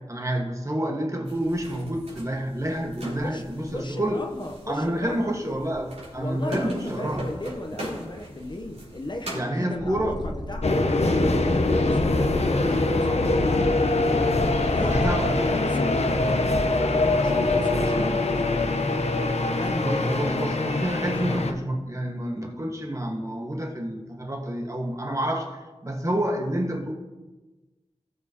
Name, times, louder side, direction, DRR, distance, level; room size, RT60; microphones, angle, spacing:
voice 1, 0.1-4.2 4.7-7.3 9.3-10.2 14.8-15.5 19.8-26.9, right 1 dB, 30° right, 2 dB, 1.6 m, -28 dB
sound 1, 1.2-9.4, right 1 dB, 75° right, 3.8 m, -40 dB
voice 2, 3.2-5.4 6.2-13.6 14.7-15.1 15.5-18.7 19.5-20.6 20.9-21.2, left 1 dB, 40° left, 3 dB, 0.9 m, -36 dB
Purr, 9.7-10.8 11.5-12.6 13.3-15.4, left 1 dB, 5° right, 2.8 m, -35 dB
sound 2, 10.6-21.5, left 2 dB, 70° left, 0.9 m, -23 dB
17.0 x 6.8 x 2.9 m, 1.2 s
wide cardioid pair, 60°, 12 cm